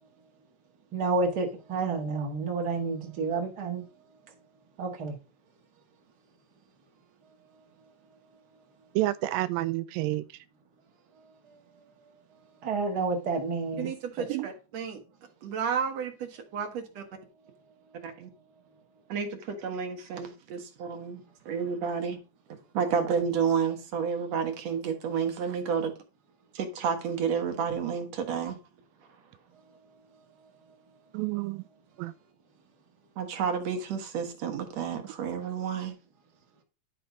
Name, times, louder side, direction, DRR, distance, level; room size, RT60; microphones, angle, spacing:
voice 1, 0.9-3.8 4.8-5.1 12.6-13.9, right 3 dB, 35° right, 1.9 m, -29 dB
voice 2, 9.0-10.3 14.3-14.5 31.1-31.6 32.0-32.1, right 17 dB, 85° right, 2.3 m, -29 dB
voice 3, 13.8-15.0 15.4-17.0 18.0-18.3 19.1-22.2 22.5-25.9 26.5-28.6 33.2-36.0, right 6 dB, 60° right, 2.3 m, -31 dB
11.0 x 4.3 x 5.2 m
omnidirectional pair, 4.0 m